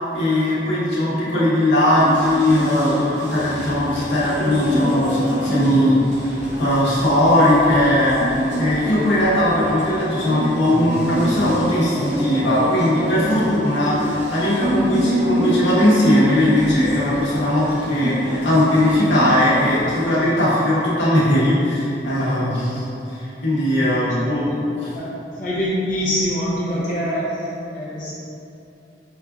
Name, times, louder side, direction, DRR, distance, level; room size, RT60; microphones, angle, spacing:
voice 1, 0.1-24.5 24.8-24.9, left 1 dB, 90° left, -9 dB, 1.0 m, -19 dB
sound 1, 1.9-20.0, equal, 45° right, 0.7 m, -26 dB
voice 2, 23.9-24.6 24.9-28.1, equal, 45° left, -9 dB, 0.7 m, -25 dB
5.5 x 2.4 x 2.3 m, 2.8 s
head